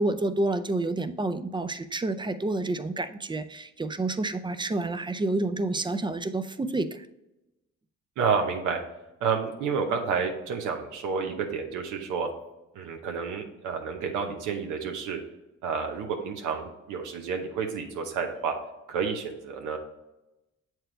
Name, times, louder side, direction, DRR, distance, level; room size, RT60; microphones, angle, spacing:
voice 1, 0.0-7.1, right 2 dB, 15° right, 11 dB, 0.4 m, -29 dB
voice 2, 8.2-8.8 9.2-12.3 12.7-15.2 15.6-18.5 18.9-19.8, right 6 dB, 90° right, 3 dB, 0.9 m, -30 dB
7.5 x 4.6 x 3.3 m, 0.95 s
cardioid pair, 90°, 30 cm